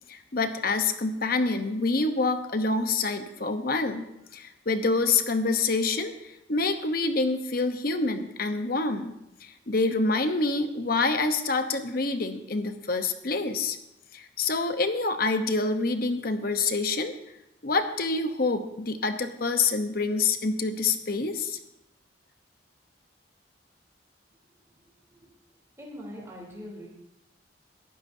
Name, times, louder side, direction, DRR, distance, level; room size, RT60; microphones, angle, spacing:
voice 1, 0.1-4.0 4.3-9.1 9.4-13.8 14.1-17.1 17.6-21.6, left 3 dB, 50° left, 8 dB, 1.0 m, -27 dB
voice 2, 24.8-25.3 25.8-26.9, equal, 15° right, -4 dB, 3.5 m, -43 dB
22.0 x 12.5 x 2.8 m, 0.86 s
head